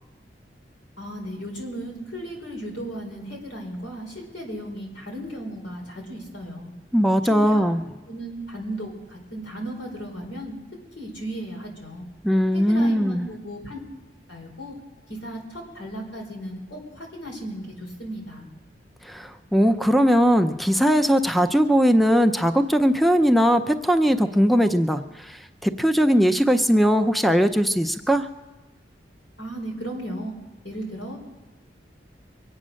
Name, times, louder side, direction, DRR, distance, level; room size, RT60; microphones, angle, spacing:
voice 1, 1.0-6.7 7.2-7.7 8.1-10.6 11.0-12.0 12.5-13.8 14.3-14.7 15.2-18.5 29.4-30.4 30.6-31.2, equal, 85° left, 0 dB, 4.8 m, -35 dB
voice 2, 6.9-7.8 12.2-13.3 19.0-28.3, equal, ahead, 9 dB, 0.5 m, -20 dB
23.5 x 8.8 x 6.3 m, 1.2 s
head